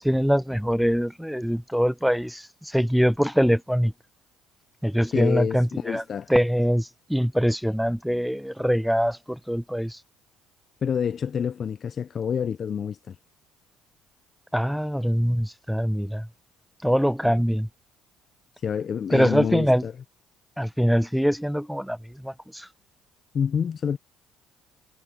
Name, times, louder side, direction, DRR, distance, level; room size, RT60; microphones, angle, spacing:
voice 1, 0.0-3.9 4.8-6.0 6.3-10.0 14.5-16.3 16.8-17.7 19.1-19.8 20.6-22.7, equal, ahead, 1.0 m, -23 dB
voice 2, 5.1-6.3 10.8-13.2 17.2-17.4 18.6-19.9 23.3-24.0, left 7 dB, 45° left, 0.7 m, -27 dB
hypercardioid pair, 55°, 0 cm